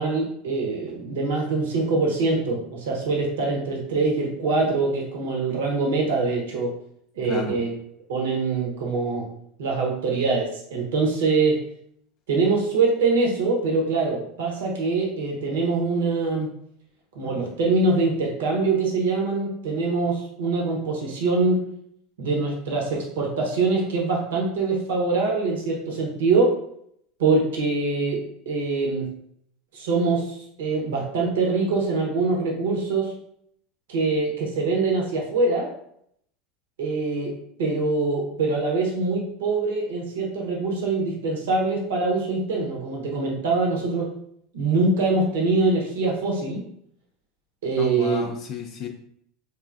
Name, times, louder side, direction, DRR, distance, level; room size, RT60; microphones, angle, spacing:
voice 1, 0.0-6.7 7.1-7.7 8.1-9.2 9.6-11.6 12.3-16.5 17.1-21.6 22.2-26.5 27.2-29.1 29.7-33.1 33.9-35.7 36.8-44.1 44.5-46.6 47.6-48.3, right 3 dB, 85° right, -1 dB, 0.9 m, -24 dB
voice 2, 7.2-7.6 47.8-48.9, left 4 dB, 55° left, 2 dB, 0.4 m, -32 dB
4.6 x 2.4 x 2.5 m, 0.71 s
hypercardioid pair, 100°, 0 cm